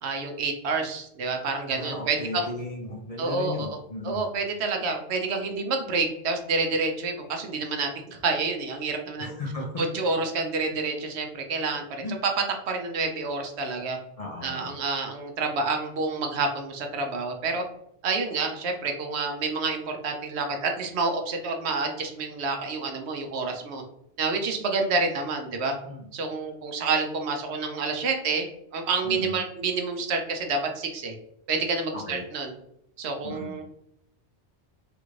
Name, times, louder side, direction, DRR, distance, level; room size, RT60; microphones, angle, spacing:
voice 1, 0.0-2.4 3.2-3.8 4.0-9.3 9.8-12.0 12.7-14.0 14.4-17.6 18.0-23.8 24.2-25.7 26.1-28.5 28.7-31.1 31.5-32.5 33.0-33.6, right 4 dB, 70° right, 4 dB, 0.9 m, -28 dB
voice 2, 1.7-4.3 9.2-9.7 12.0-12.1 14.2-14.7 25.9-26.1 29.0-29.4 31.9-32.2 33.2-33.5, left 2 dB, 50° left, -2 dB, 0.5 m, -35 dB
3.4 x 2.5 x 3.0 m, 0.75 s
omnidirectional pair, 1.2 m